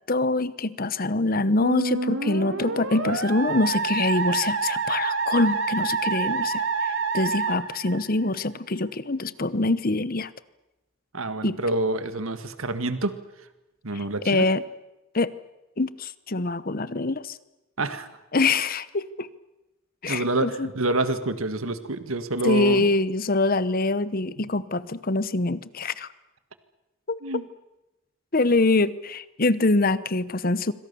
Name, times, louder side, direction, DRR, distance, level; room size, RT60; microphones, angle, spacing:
voice 1, 0.1-10.3 11.4-11.6 13.9-14.6 15.1-15.3 15.8-17.4 18.3-19.3 20.0-20.7 22.4-26.1 27.1-27.2 28.3-30.7, left 2 dB, 45° left, 16 dB, 1.0 m, -24 dB
Musical instrument, 1.6-8.5, right 4 dB, 65° right, 2.7 m, -27 dB
voice 2, 11.1-13.2 13.8-14.4 17.8-18.1 20.0-22.9 27.2-27.5, right 2 dB, 85° right, 10 dB, 1.8 m, -27 dB
26.5 x 25.5 x 7.0 m, 0.97 s
head